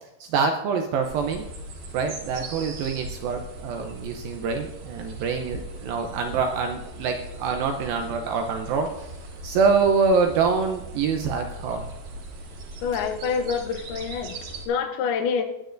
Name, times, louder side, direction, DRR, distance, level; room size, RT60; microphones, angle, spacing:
voice 1, 0.2-1.4 1.9-9.1 9.4-11.9, right 5 dB, 85° right, 4 dB, 2.0 m, -25 dB
sound 1, 1.0-14.7, right 2 dB, 60° right, 3.2 m, -39 dB
voice 2, 12.8-14.4 14.7-15.4, left 6 dB, 75° left, 7 dB, 2.4 m, -26 dB
19.5 x 9.1 x 2.6 m, 0.92 s
omnidirectional pair, 5.0 m